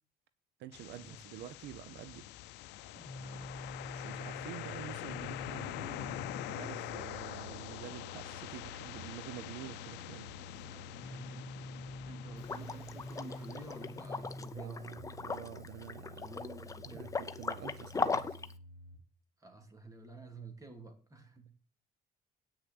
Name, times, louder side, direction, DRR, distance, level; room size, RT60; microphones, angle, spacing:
voice 1, 0.6-2.3 3.9-10.3 14.5-16.3 16.8-18.4, right 12 dB, 80° right, 0.8 m, -48 dB
sound 1, 0.7-14.6, left 16 dB, 85° left, 0.6 m, -45 dB
sound 2, 2.9-19.0, equal, 55° right, 5.1 m, -48 dB
voice 2, 3.2-3.7 10.4-11.5 12.1-14.9 16.2-17.2 19.4-21.5, right 3 dB, 20° right, 2.7 m, -51 dB
Liquid, 12.4-18.5, left 4 dB, 20° left, 0.7 m, -39 dB
9.0 x 6.5 x 7.9 m
cardioid pair, 110°, 17 cm